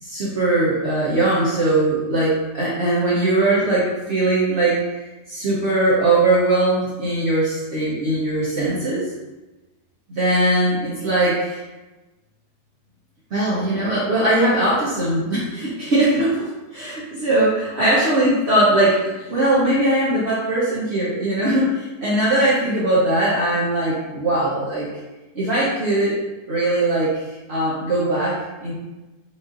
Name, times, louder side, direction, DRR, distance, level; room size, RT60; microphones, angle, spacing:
voice 1, 0.0-4.8 5.3-9.0 10.1-11.6 13.3-24.9 25.3-26.2 26.5-27.2 27.5-28.7, right 1 dB, 50° right, -9 dB, 1.0 m, -20 dB
5.5 x 2.6 x 2.5 m, 1.1 s
omnidirectional pair, 1.7 m